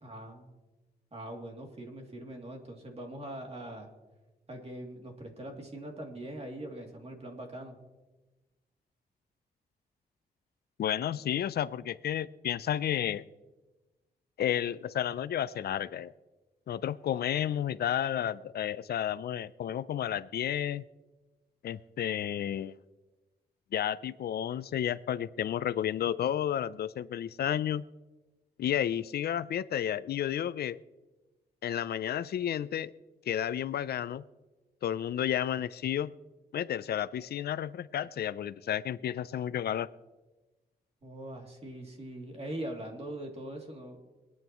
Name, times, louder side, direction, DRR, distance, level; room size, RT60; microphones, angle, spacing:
voice 1, 0.0-0.5 1.1-3.9 4.5-7.8 41.0-44.0, right 1 dB, 40° right, 1 dB, 2.8 m, -42 dB
voice 2, 10.8-13.2 14.4-16.1 16.7-20.8 21.6-22.7 23.7-27.8 28.6-30.8 31.6-32.9 33.3-34.2 34.8-36.1 36.5-39.9, left 10 dB, 75° left, 17 dB, 0.5 m, -31 dB
25.5 x 9.2 x 3.0 m, 1.2 s
cardioid pair, 75°, 16 cm